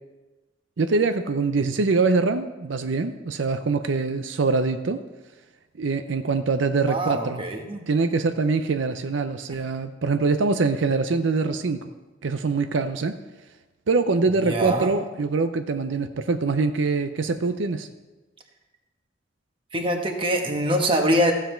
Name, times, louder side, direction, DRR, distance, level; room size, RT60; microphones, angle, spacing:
voice 1, 0.8-5.0 5.8-7.4 7.9-11.8 12.2-13.2 13.9-17.9, right 4 dB, 85° right, 9 dB, 0.5 m, -24 dB
voice 2, 6.9-7.9 14.4-14.9 19.7-21.3, equal, 25° right, 3 dB, 1.2 m, -24 dB
14.5 x 7.4 x 4.4 m, 1.2 s
head